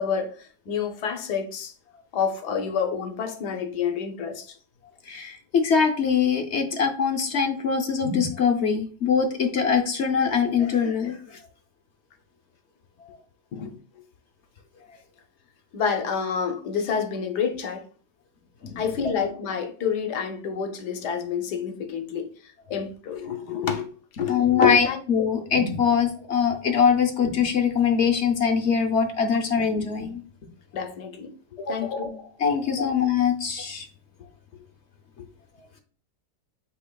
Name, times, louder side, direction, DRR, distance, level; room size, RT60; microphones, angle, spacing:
voice 1, 0.0-1.7 2.1-4.6 13.5-13.7 15.7-17.9 18.8-23.9 24.2-25.3 30.7-31.3 31.7-32.3 32.8-32.9 34.5-34.6, left 7 dB, 80° left, 1.4 m, -28 dB
voice 2, 5.1-11.4 13.0-13.2 18.6-18.8 24.3-30.2 31.6-31.8 32.4-33.9, left 6 dB, 55° left, 0.8 m, -23 dB
8.1 x 2.9 x 2.2 m
omnidirectional pair, 1.7 m